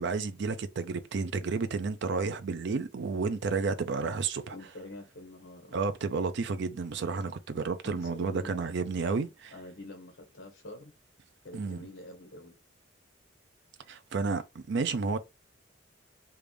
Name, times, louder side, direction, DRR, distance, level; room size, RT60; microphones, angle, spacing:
voice 1, 0.0-4.5 5.7-9.3 11.5-11.8 13.9-15.2, right 4 dB, 60° right, 0.5 m, -31 dB
voice 2, 4.5-5.9 7.8-8.6 9.0-10.9 11.4-12.5, left 1 dB, 75° left, 1.5 m, -46 dB
3.4 x 2.5 x 3.3 m
head